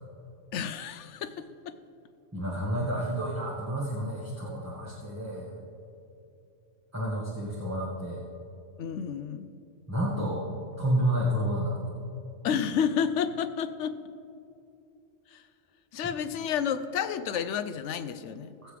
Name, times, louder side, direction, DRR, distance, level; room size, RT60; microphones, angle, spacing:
voice 1, 0.5-1.7 8.8-9.5 12.4-14.0 15.3-15.4 15.9-18.5, left 7 dB, 75° left, 11 dB, 0.9 m, -30 dB
voice 2, 2.3-5.6 6.9-8.2 9.9-11.8 18.6-18.7, equal, 15° right, -6 dB, 1.5 m, -30 dB
20.5 x 7.7 x 3.4 m, 2.7 s
omnidirectional pair, 1.2 m